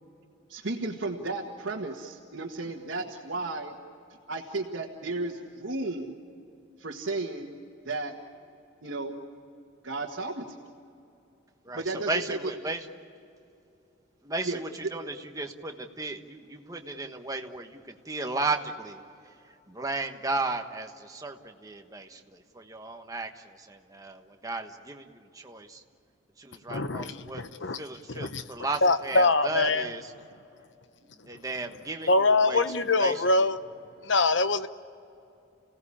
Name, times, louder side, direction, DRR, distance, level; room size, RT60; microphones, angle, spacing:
voice 1, 0.5-3.8 4.3-6.2 6.8-7.6 7.8-8.1 8.8-9.2 9.8-10.6 11.7-12.4 14.4-14.6, right 2 dB, 70° right, -2 dB, 1.8 m, -33 dB
voice 2, 11.6-12.9 14.2-19.0 19.7-25.8 26.4-27.4 27.7-30.1 31.3-32.6 33.0-33.5, right 3 dB, 20° right, 4 dB, 1.3 m, -35 dB
voice 3, 26.7-27.8 28.1-28.4 28.8-29.9 32.1-33.6 34.0-34.7, left 3 dB, 65° left, 11 dB, 0.9 m, -24 dB
30.0 x 17.5 x 8.7 m, 2.7 s
head